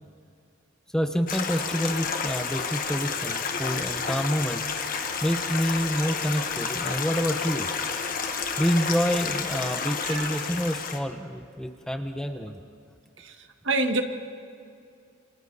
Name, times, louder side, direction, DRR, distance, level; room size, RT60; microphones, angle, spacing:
voice 1, 0.9-4.6 5.2-7.7 8.6-12.6, equal, 5° left, 5 dB, 0.8 m, -27 dB
Stream, 1.3-11.0, left 5 dB, 45° left, 1.4 m, -30 dB
voice 2, 10.0-10.4 13.2-14.0, right 2 dB, 70° right, 6 dB, 1.6 m, -28 dB
28.5 x 26.5 x 4.1 m, 2.5 s
head